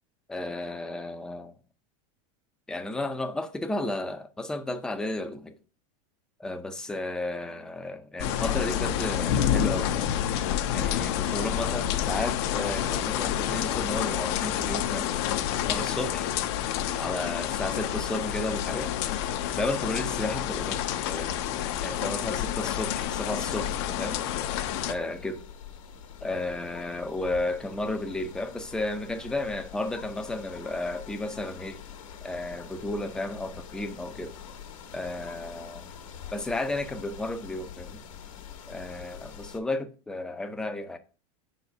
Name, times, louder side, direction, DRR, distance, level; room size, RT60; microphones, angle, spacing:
voice 1, 0.3-1.5 2.7-5.5 6.4-10.1 10.7-15.2 15.6-16.3 16.9-18.9 19.6-21.3 21.8-24.2 24.9-25.4 26.2-31.8 32.2-34.4 34.9-35.8 36.3-38.0 38.7-41.0, left 2 dB, 5° left, 0.5 m, -33 dB
sound 1, 8.2-24.9, left 10 dB, 55° left, 0.6 m, -28 dB
sound 2, 21.9-39.6, left 7 dB, 80° left, 1.2 m, -45 dB
5.1 x 4.1 x 5.8 m
supercardioid pair, 155°, 17 cm